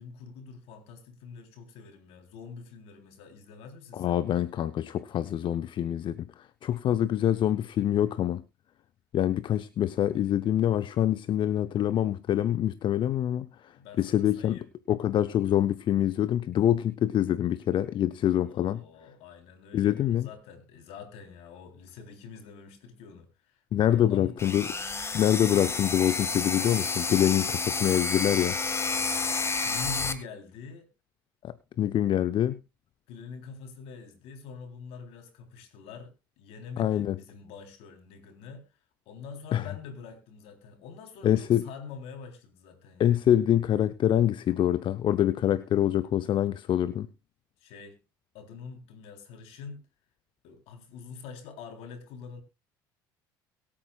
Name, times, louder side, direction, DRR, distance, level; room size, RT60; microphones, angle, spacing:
voice 1, 0.0-4.2 13.7-14.7 18.4-23.6 23.9-24.4 29.6-30.9 33.1-38.7 39.1-43.3 47.6-48.0 48.3-49.8 50.4-52.4, left 5 dB, 65° left, 3.6 m, -45 dB
voice 2, 3.9-6.3 6.6-8.4 9.1-13.7 14.0-14.6 14.9-18.8 19.7-20.3 23.7-24.7 25.1-28.6 31.4-32.6 36.8-37.2 39.5-39.6 41.2-41.6 43.0-47.1, left 11 dB, 45° left, 0.6 m, -25 dB
sound 1, 24.4-30.1, left 4 dB, 25° left, 1.8 m, -30 dB
23.0 x 8.6 x 2.4 m
hypercardioid pair, 65°, 11 cm